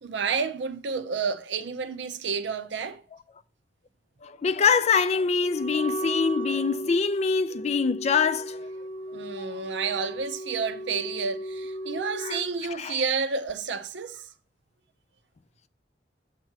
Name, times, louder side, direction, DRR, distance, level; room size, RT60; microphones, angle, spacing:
voice 1, 0.0-3.0 9.1-14.3, right 5 dB, 85° right, 0.7 m, -30 dB
voice 2, 4.2-8.7 9.4-9.5 12.2-12.4 12.8-13.0, left 5 dB, 40° left, 0.4 m, -24 dB
Wind instrument woodwind instrument, 5.4-12.5, right 1 dB, 15° left, 0.8 m, -35 dB
7.4 x 3.0 x 5.9 m
head